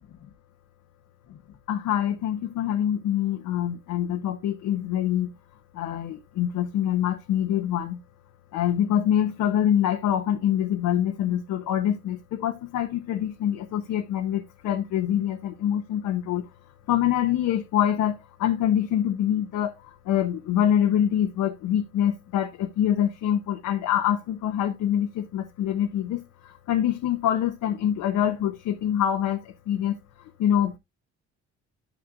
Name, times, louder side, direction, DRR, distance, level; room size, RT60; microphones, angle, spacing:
voice 1, 1.7-5.3 5.7-8.0 8.5-16.5 16.9-30.0 30.4-30.8, left 10 dB, 80° left, 0.8 m, -25 dB
11.0 x 6.1 x 2.4 m
cardioid pair, 90°, 30 cm